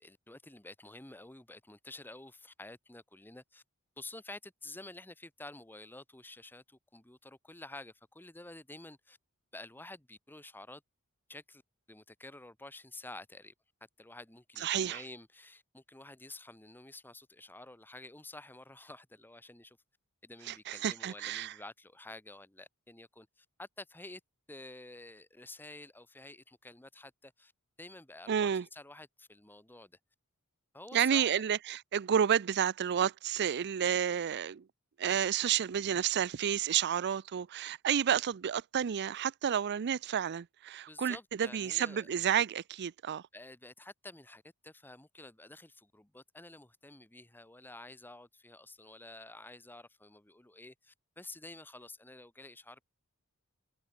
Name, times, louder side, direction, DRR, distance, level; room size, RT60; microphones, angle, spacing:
voice 1, 0.0-3.6 4.0-9.2 9.5-10.8 11.3-11.6 11.9-13.5 14.0-19.8 20.2-24.2 24.5-27.5 27.8-29.9 30.7-31.4 40.9-42.1 43.3-52.8, left 2 dB, 10° left, 1.1 m, -50 dB
voice 2, 14.6-15.0 20.5-21.5 28.3-28.6 30.9-34.7 35.0-43.2, right 8 dB, 50° right, 0.4 m, -30 dB
head